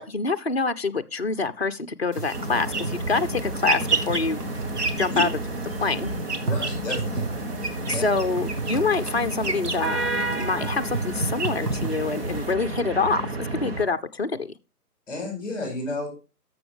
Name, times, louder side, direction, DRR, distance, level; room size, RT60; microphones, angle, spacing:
voice 1, 0.0-4.4 5.0-5.3 5.8-6.1 7.9-14.5, left 4 dB, 40° left, 0.6 m, -26 dB
sound 1, 2.1-12.5, right 3 dB, 70° right, 1.9 m, -31 dB
sound 2, 2.3-13.8, right 1 dB, 40° right, 1.4 m, -31 dB
voice 2, 6.5-7.3 7.9-8.0 15.1-16.1, left 2 dB, 10° left, 5.6 m, -31 dB
13.0 x 7.0 x 3.5 m
figure-of-eight pair, 150°, 48 cm